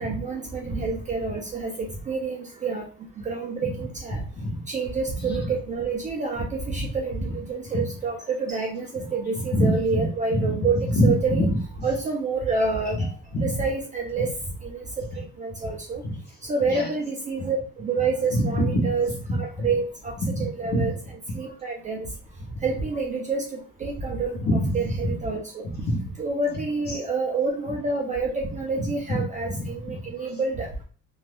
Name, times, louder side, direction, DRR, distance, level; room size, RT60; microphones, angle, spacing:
voice 1, 0.0-2.8 3.3-4.2 4.7-8.9 9.1-11.4 11.8-13.1 13.4-14.3 14.6-14.8 15.2-16.0 16.5-19.1 19.4-20.1 20.4-20.9 21.4-22.0 22.6-23.4 23.8-24.4 24.7-25.7 26.2-30.7, right 4 dB, 25° right, -1 dB, 0.4 m, -28 dB
voice 2, 5.2-5.5 7.7-7.8 9.0-9.1 9.3-10.5 10.9-11.9 12.9-13.1 13.3-13.5 14.2-14.3 16.0-16.2 16.7-16.9 18.3-19.7 20.2-20.9 24.4-25.1 25.8-26.1 26.9-27.0 28.8-30.3, equal, 30° left, 0 dB, 0.9 m, -26 dB
2.5 x 2.2 x 3.2 m, 0.40 s
cardioid pair, 170°, 31 cm